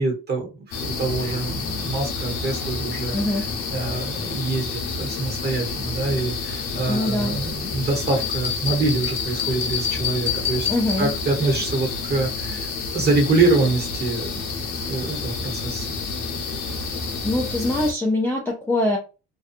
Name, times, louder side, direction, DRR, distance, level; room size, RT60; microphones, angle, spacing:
voice 1, 0.0-10.7 11.0-12.7 12.9-14.3 14.9-15.9, right 3 dB, 35° right, 2 dB, 1.0 m, -25 dB
sound 1, 0.7-17.9, left 4 dB, 85° left, 0.7 m, -29 dB
voice 2, 3.1-3.4 6.9-7.4 10.7-11.1 17.2-19.0, left 1 dB, 10° left, -2 dB, 0.3 m, -23 dB
sound 2, 8.1-11.4, left 8 dB, 35° left, 0.7 m, -28 dB
2.7 x 2.2 x 2.4 m, 0.30 s
cardioid pair, 170°, 30 cm